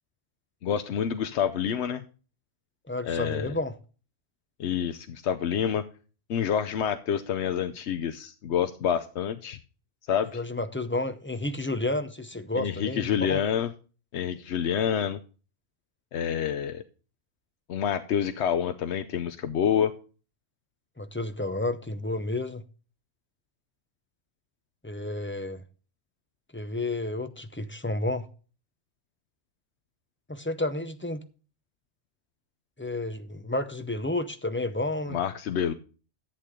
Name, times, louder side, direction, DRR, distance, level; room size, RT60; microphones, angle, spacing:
voice 1, 0.6-2.0 3.0-3.5 4.6-5.8 6.3-9.6 10.1-10.4 12.6-13.7 14.1-15.2 16.1-16.8 17.7-19.9 35.1-35.7, left 8 dB, 80° left, 1.0 m, -27 dB
voice 2, 2.9-3.8 10.3-13.4 21.0-22.6 24.8-25.6 26.5-28.3 30.3-31.2 32.8-35.2, left 2 dB, 15° left, 0.6 m, -31 dB
11.0 x 8.3 x 3.7 m
omnidirectional pair, 1.1 m